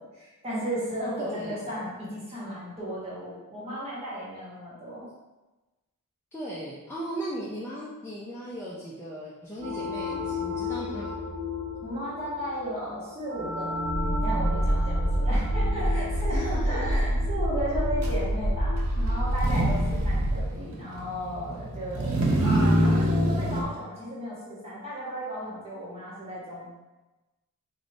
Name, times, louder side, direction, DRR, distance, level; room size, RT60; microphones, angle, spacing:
voice 1, 0.0-5.1 11.8-26.7, equal, 25° right, -8 dB, 1.3 m, -35 dB
voice 2, 1.2-1.7 6.3-11.1 16.3-17.2, right 1 dB, 10° left, -7 dB, 0.4 m, -37 dB
sound 1, 9.6-20.0, left 3 dB, 90° right, 0.9 m, -35 dB
sound 2, 13.8-20.4, right 1 dB, 65° left, 0.7 m, -26 dB
Motor vehicle (road), 18.0-18.1 19.3-23.6, equal, 65° right, 0.6 m, -26 dB
3.2 x 2.6 x 3.9 m, 1.1 s
head